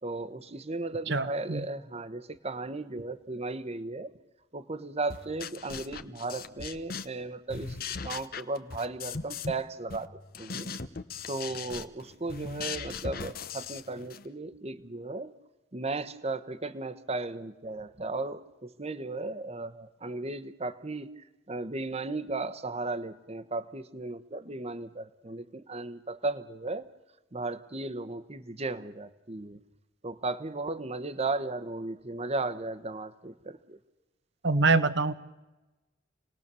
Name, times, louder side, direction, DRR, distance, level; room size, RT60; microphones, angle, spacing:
voice 1, 0.0-4.1 4.5-7.8 8.0-10.7 11.3-15.3 15.7-21.1 21.5-26.8 27.3-29.6 30.0-33.8, right 2 dB, 35° right, 12 dB, 1.2 m, -35 dB
voice 2, 1.1-1.6 34.4-35.1, right 3 dB, 70° right, 12 dB, 1.3 m, -25 dB
sound 1, 5.1-7.2 7.5-9.6 9.9-14.2, left 5 dB, 55° left, 1.1 m, -39 dB
28.5 x 19.5 x 7.0 m, 1.1 s
head